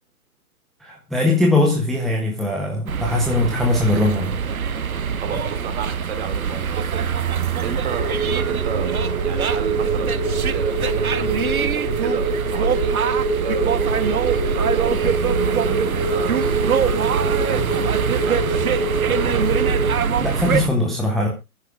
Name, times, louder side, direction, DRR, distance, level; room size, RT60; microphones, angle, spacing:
voice 1, 0.8-4.4 20.2-21.3, left 2 dB, ahead, 0.7 m, -20 dB
sound 1, 2.9-20.7, right 7 dB, 65° right, 1.1 m, -23 dB
voice 2, 5.0-7.1 7.6-10.2 10.5-13.0 13.4-15.1 15.4-19.3, right 5 dB, 45° right, 3.3 m, -33 dB
sound 2, 7.9-19.9, right 2 dB, 80° right, 2.6 m, -25 dB
25.0 x 10.0 x 2.3 m
figure-of-eight pair, 125°, 45 cm